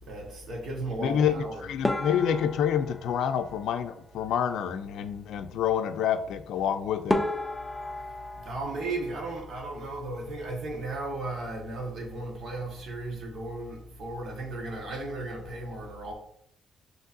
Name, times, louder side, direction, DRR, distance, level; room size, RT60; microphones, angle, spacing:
voice 1, 0.0-1.6 8.1-16.1, right 2 dB, 65° right, 1.3 m, -35 dB
voice 2, 1.0-7.3, left 8 dB, 80° left, 0.4 m, -28 dB
sound 1, 1.8-4.3 6.6-6.7 7.1-9.9 10.1-10.9 11.2-11.4 11.7-11.8 12.4-12.8, left 1 dB, 10° left, 0.5 m, -34 dB
5.4 x 2.9 x 2.6 m
cardioid pair, 90°, 0 cm